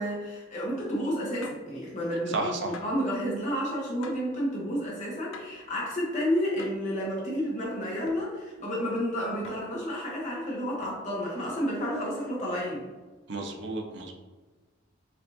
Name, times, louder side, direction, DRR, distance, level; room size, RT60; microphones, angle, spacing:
voice 1, 0.0-12.9, equal, 35° left, -5 dB, 1.0 m, -31 dB
sound 1, 1.4-1.7 2.7-3.1 4.0-4.4 5.3-5.7 6.6-6.9 8.1-8.3 9.4-9.8 10.8-11.2, left 4 dB, 80° left, 0.4 m, -46 dB
voice 2, 2.3-2.7 13.3-14.1, right 3 dB, 60° right, 3 dB, 0.5 m, -32 dB
4.5 x 2.5 x 2.7 m, 1.3 s
head